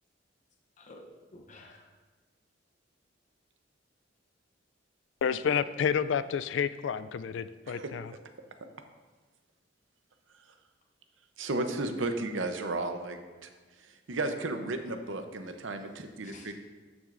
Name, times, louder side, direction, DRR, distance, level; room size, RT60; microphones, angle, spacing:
voice 1, 0.8-1.9 16.2-16.5, left 2 dB, 40° left, 1 dB, 0.7 m, -51 dB
voice 2, 5.2-8.1, left 7 dB, 75° left, 14 dB, 0.3 m, -30 dB
voice 3, 11.4-13.5 13.8-16.5, right 2 dB, 85° right, 7 dB, 0.7 m, -34 dB
12.5 x 6.1 x 2.6 m, 1.3 s
head